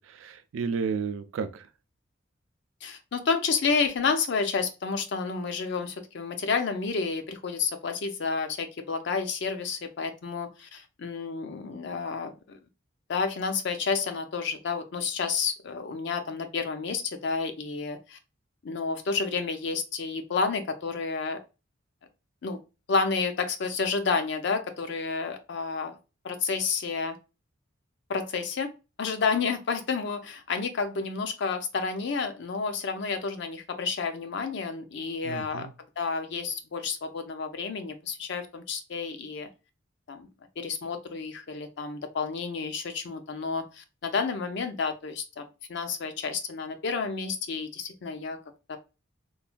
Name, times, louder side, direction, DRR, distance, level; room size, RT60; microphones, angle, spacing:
voice 1, 0.1-1.7 35.3-35.7, right 5 dB, 80° right, 0.4 m, -32 dB
voice 2, 2.8-12.6 13.1-18.2 18.6-21.4 22.4-22.6 22.9-26.0 26.2-27.2 28.1-28.7 29.0-35.7 36.0-39.5 40.1-40.3 40.6-45.4 45.7-48.4 48.7-48.8, left 5 dB, 60° left, 0.5 m, -30 dB
3.1 x 2.2 x 2.4 m
head